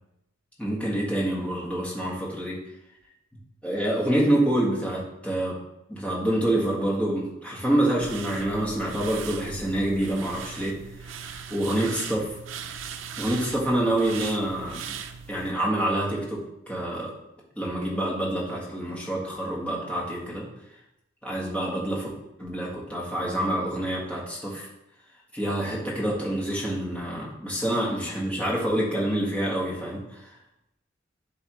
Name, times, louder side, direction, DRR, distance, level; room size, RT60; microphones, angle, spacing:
voice 1, 0.6-2.6 3.6-5.6 5.9-10.8 11.0-12.4 13.2-15.0 15.3-17.1 17.5-20.5 21.2-22.1 22.4-24.7 25.3-30.2, right 1 dB, 5° left, -5 dB, 1.7 m, -27 dB
sound 1, 8.0-15.5, right 6 dB, 90° right, 0.5 m, -39 dB
11.0 x 3.9 x 3.1 m, 0.87 s
head